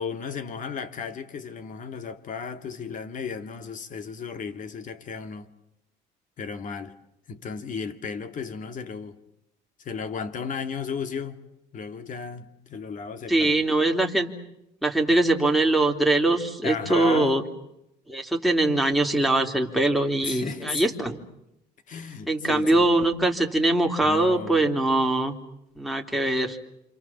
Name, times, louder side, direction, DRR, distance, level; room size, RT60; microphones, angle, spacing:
voice 1, 0.0-5.5 6.4-7.0 7.3-9.2 9.8-11.4 11.7-13.7 16.6-17.4 20.2-21.0 21.9-22.9 24.0-24.6, left 6 dB, 50° left, 2.5 m, -34 dB
voice 2, 13.3-14.3 14.8-17.4 18.1-21.2 22.3-25.3 25.8-26.6, right 2 dB, ahead, 3.3 m, -22 dB
28.0 x 27.0 x 7.4 m
cardioid pair, 110°, 17 cm